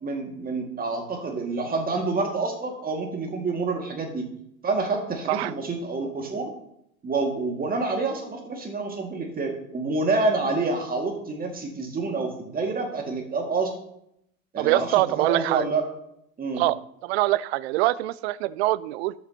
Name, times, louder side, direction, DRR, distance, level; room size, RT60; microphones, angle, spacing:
voice 1, 0.0-4.3 4.6-6.5 7.0-13.7 14.5-15.8 16.4-16.6, right 3 dB, 20° right, 2 dB, 2.0 m, -28 dB
voice 2, 14.6-15.7 16.6-19.1, right 17 dB, 50° right, 19 dB, 0.5 m, -24 dB
13.0 x 7.1 x 2.9 m, 0.76 s
figure-of-eight pair, 85°, 42 cm